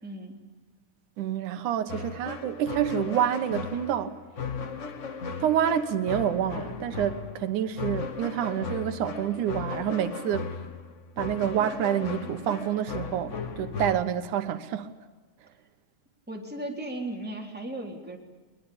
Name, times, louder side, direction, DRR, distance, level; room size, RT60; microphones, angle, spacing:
voice 1, 0.0-0.4 16.3-18.2, right 1 dB, 5° right, 3.4 m, -36 dB
voice 2, 1.2-4.1 5.4-10.5 11.2-14.9, right 10 dB, 85° right, 2.6 m, -28 dB
sound 1, 1.9-14.0, left 5 dB, 50° left, 0.8 m, -37 dB
22.0 x 21.0 x 8.7 m
omnidirectional pair, 3.4 m